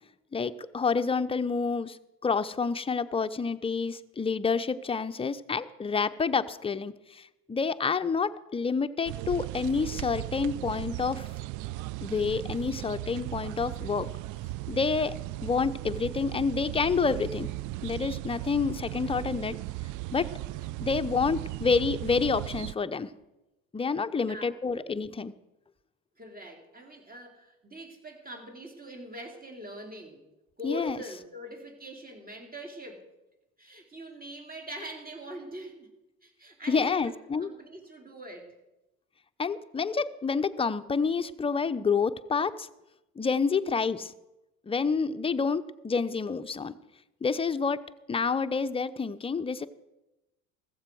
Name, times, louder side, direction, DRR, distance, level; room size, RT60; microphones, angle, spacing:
voice 1, 0.3-2.0 2.2-11.3 12.0-14.1 14.7-15.1 15.4-17.5 17.8-19.6 20.1-20.3 20.8-23.1 23.7-25.3 30.6-31.0 36.7-37.5 39.4-42.7 43.2-44.1 44.7-46.7 47.2-47.8 48.1-49.7, left 5 dB, 15° left, 10 dB, 0.7 m, -28 dB
sound 1, 9.1-22.7, right 17 dB, 50° right, 0.5 m, -37 dB
voice 2, 24.3-24.9 26.2-30.2 30.6-33.1 33.6-35.9 36.2-38.6, right 1 dB, 20° right, 2 dB, 3.6 m, -43 dB
15.0 x 14.5 x 4.7 m, 0.97 s
hypercardioid pair, 70°, 40 cm